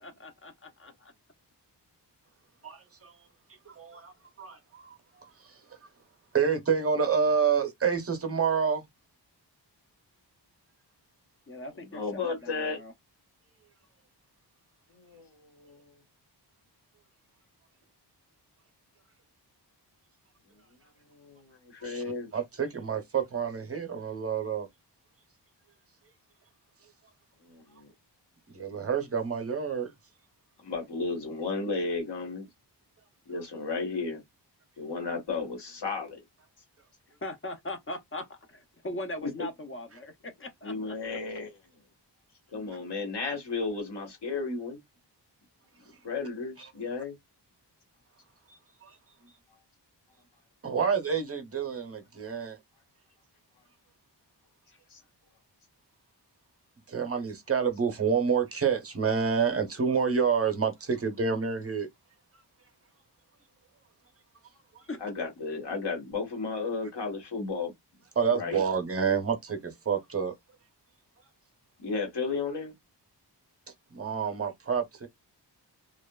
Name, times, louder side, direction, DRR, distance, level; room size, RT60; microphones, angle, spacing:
voice 1, 0.0-1.1 11.5-12.9 37.2-40.9 64.9-65.0, left 1 dB, 30° left, 0.5 m, -40 dB
voice 2, 2.6-3.1 3.7-4.1 4.4-4.9 5.2-5.3 6.3-8.8 21.8-22.0 22.3-24.7 28.5-29.9 48.8-48.9 50.6-52.6 56.9-61.9 64.8-64.9 68.2-70.3 73.9-75.1, right 6 dB, 35° right, 0.6 m, -28 dB
voice 3, 11.7-12.8 14.9-15.9 21.1-22.3 27.4-27.9 30.6-32.5 33.3-34.2 34.8-36.2 39.2-39.5 40.6-41.6 42.5-44.8 46.0-47.2 54.9-55.0 65.0-67.7 68.3-68.6 71.8-72.7, left 4 dB, 70° left, 1.2 m, -34 dB
2.8 x 2.2 x 2.2 m
wide cardioid pair, 145°, 42 cm